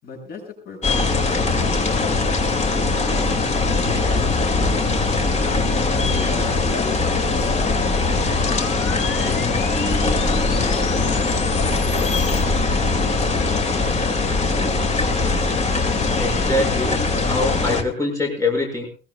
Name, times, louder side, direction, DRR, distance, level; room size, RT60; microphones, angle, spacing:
voice 1, 0.0-1.0 1.4-2.2 2.7-4.6 5.2-6.6 7.5-8.0 9.8-11.4 11.9-14.2, left 4 dB, 55° left, 2 dB, 7.8 m, -36 dB
sound 1, 0.8-17.8, left 3 dB, 40° left, 2.5 m, -21 dB
sound 2, 2.5-12.4, left 6 dB, 85° left, 3.4 m, -35 dB
voice 2, 16.2-18.9, left 2 dB, 15° left, -1 dB, 6.4 m, -24 dB
23.0 x 21.0 x 2.4 m, 0.38 s
cardioid pair, 170°, 19 cm